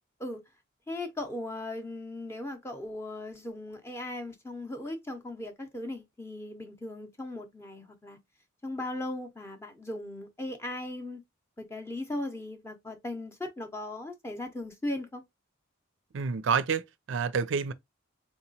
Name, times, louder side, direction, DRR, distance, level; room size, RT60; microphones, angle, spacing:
voice 1, 0.9-8.2 8.6-11.2 11.6-15.2, left 1 dB, 10° left, 0.6 m, -38 dB
voice 2, 16.1-17.7, right 6 dB, 60° right, 0.4 m, -28 dB
3.7 x 2.9 x 2.7 m
head